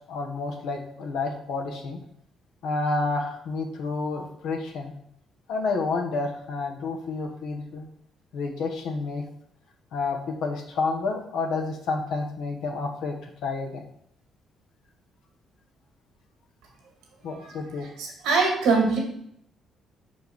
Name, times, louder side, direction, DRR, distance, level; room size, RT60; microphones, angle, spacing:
voice 1, 0.1-2.0 2.6-4.9 5.5-7.9 8.3-9.2 9.9-13.8 17.2-17.9, left 3 dB, 75° left, 2 dB, 1.2 m, -29 dB
voice 2, 17.3-19.0, right 4 dB, 85° right, 1 dB, 2.0 m, -24 dB
5.5 x 4.6 x 4.6 m, 0.71 s
supercardioid pair, 65°, 0 cm